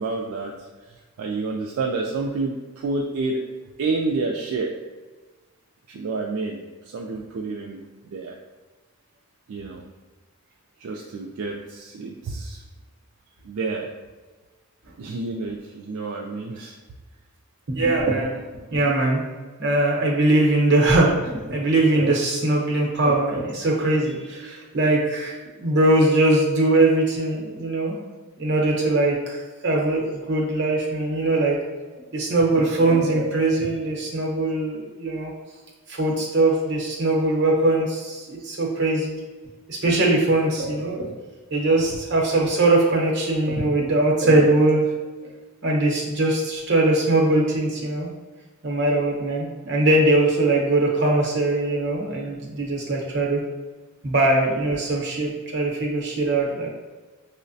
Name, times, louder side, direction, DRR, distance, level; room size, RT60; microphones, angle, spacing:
voice 1, 0.0-3.4 3.8-4.7 5.9-8.4 9.5-9.8 10.8-12.6 13.4-13.9 15.0-16.8, right 3 dB, 70° right, 0 dB, 0.3 m, -29 dB
voice 2, 17.7-18.4 18.7-19.2 19.6-27.9 28.4-31.5 32.1-35.3 35.9-39.2 39.7-41.1 41.5-44.9 45.2-45.3 45.6-48.1 48.6-53.4 54.0-56.7, right 2 dB, 50° right, -2 dB, 0.8 m, -21 dB
5.5 x 2.1 x 2.6 m, 1.3 s
head